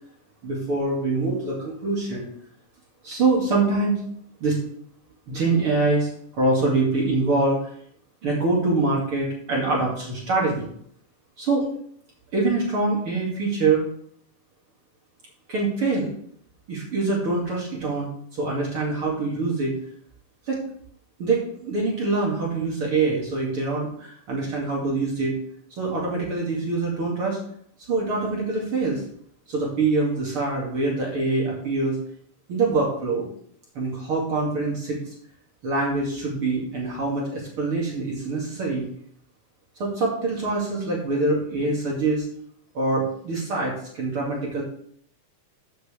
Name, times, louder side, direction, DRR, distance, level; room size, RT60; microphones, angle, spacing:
voice 1, 0.4-2.3 3.0-4.0 4.4-4.6 5.3-7.6 8.2-10.7 11.4-11.7 12.3-13.9 15.5-16.1 16.7-18.1 18.4-19.8 20.5-20.6 21.2-25.4 25.7-27.4 27.9-29.0 29.5-32.0 32.5-33.3 33.7-35.0 35.6-38.9 39.8-42.3 42.7-44.6, right 3 dB, 45° right, -3 dB, 3.0 m, -24 dB
14.0 x 7.7 x 3.4 m, 0.64 s
omnidirectional pair, 3.6 m